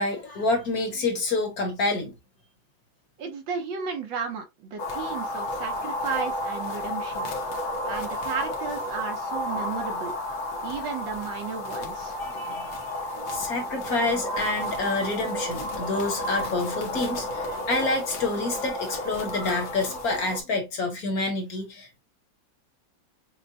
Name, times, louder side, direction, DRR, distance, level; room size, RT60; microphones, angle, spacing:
voice 1, 0.0-2.1 12.2-12.8 13.1-22.0, left 2 dB, 55° left, 1.4 m, -28 dB
voice 2, 3.2-7.3 7.8-10.1 10.6-12.2, right 6 dB, 75° right, 1.6 m, -34 dB
sound 1, 4.8-20.4, left 1 dB, 80° left, 1.8 m, -32 dB
6.5 x 2.2 x 2.7 m
omnidirectional pair, 2.1 m